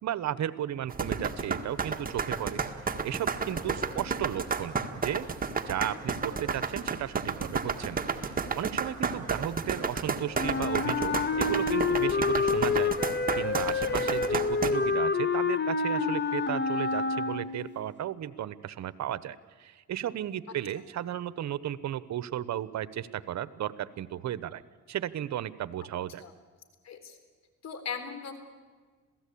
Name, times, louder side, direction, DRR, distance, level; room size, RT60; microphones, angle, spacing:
voice 1, 0.0-2.6 3.0-5.3 5.7-12.9 13.4-24.6 24.9-26.2, right 11 dB, 65° right, 17 dB, 1.0 m, -34 dB
sound 1, 0.9-14.7, right 5 dB, 30° right, 1.7 m, -31 dB
Wind instrument woodwind instrument, 10.4-17.7, left 4 dB, 35° left, 1.6 m, -28 dB
voice 2, 26.8-27.2 27.6-28.4, left 6 dB, 60° left, 9 dB, 3.8 m, -39 dB
27.0 x 17.0 x 8.5 m, 1.4 s
cardioid pair, 90°, 30 cm